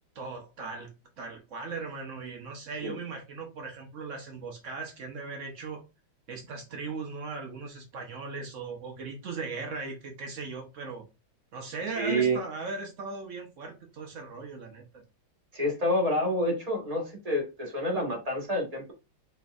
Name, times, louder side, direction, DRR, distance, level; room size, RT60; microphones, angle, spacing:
voice 1, 0.2-0.9 1.2-5.9 6.3-11.1 11.5-15.0, right 4 dB, 75° right, 0.7 m, -38 dB
voice 2, 12.0-12.4 15.5-18.9, equal, 25° right, 0.9 m, -28 dB
4.3 x 3.3 x 2.3 m
omnidirectional pair, 2.2 m